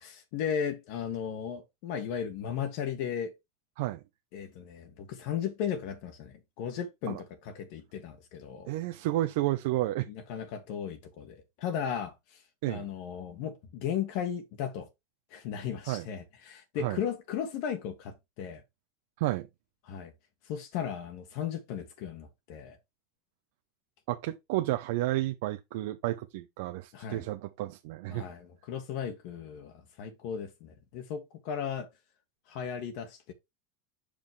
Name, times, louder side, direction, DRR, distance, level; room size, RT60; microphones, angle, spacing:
voice 1, 0.0-3.3 4.3-8.7 10.1-12.4 12.7-14.9 15.3-18.6 19.9-20.1 20.4-22.8 26.9-27.2 28.1-31.9 32.5-33.3, left 8 dB, 60° left, 1.6 m, -36 dB
voice 2, 8.7-10.1 12.6-12.8 15.9-16.1 16.8-17.0 19.2-19.5 24.1-28.2, right 16 dB, 70° right, 0.7 m, -31 dB
7.5 x 5.1 x 3.4 m
hypercardioid pair, 90°, 0 cm